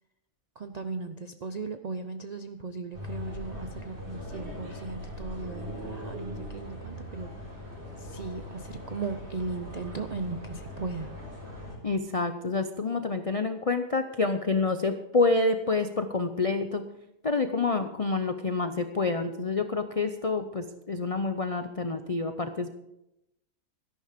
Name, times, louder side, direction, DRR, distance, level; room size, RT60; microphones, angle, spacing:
voice 1, 0.6-7.6 8.0-11.1, right 4 dB, 65° right, 8 dB, 0.4 m, -37 dB
sound 1, 2.9-11.8, left 1 dB, 40° right, 5.2 m, -40 dB
voice 2, 11.8-16.8 17.2-22.7, left 3 dB, 65° left, 8 dB, 0.3 m, -28 dB
13.0 x 11.0 x 5.1 m, 0.87 s
omnidirectional pair, 1.6 m